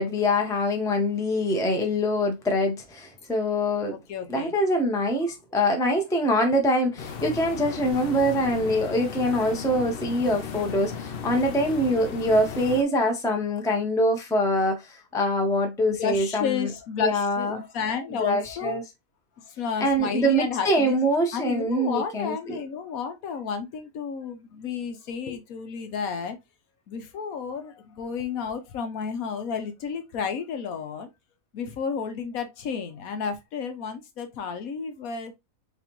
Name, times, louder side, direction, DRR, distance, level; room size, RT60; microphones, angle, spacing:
voice 1, 0.0-4.0 4.3-16.7 17.0-17.6 18.1-18.8 19.8-22.6, equal, 5° left, 0.7 m, -24 dB
voice 2, 3.9-4.5 15.9-18.8 19.4-20.9 21.3-26.4 26.9-31.1 31.5-35.3, left 6 dB, 80° left, 1.3 m, -32 dB
sound 1, 7.0-12.8, left 6 dB, 55° left, 0.7 m, -36 dB
4.1 x 3.7 x 2.9 m
omnidirectional pair, 1.5 m